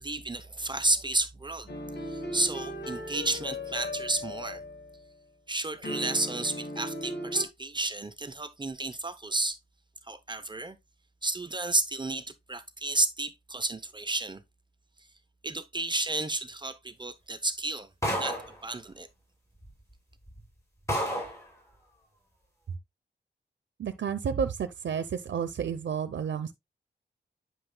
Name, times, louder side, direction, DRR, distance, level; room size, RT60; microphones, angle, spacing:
voice 1, 0.0-1.7 2.1-4.6 5.5-9.6 10.1-10.8 11.2-14.4 15.4-17.9 18.2-19.1, right 2 dB, 25° right, 0.7 m, -31 dB
sound 1, 1.7-5.0 5.8-7.5, left 1 dB, 70° left, 2.0 m, -37 dB
sound 2, 18.0-18.6 19.6-19.7 20.3-20.4 20.9-21.4, equal, 15° left, 5.0 m, -30 dB
voice 2, 23.8-26.5, right 7 dB, 75° right, 0.7 m, -31 dB
10.0 x 6.2 x 2.2 m
wide cardioid pair, 140°, 18 cm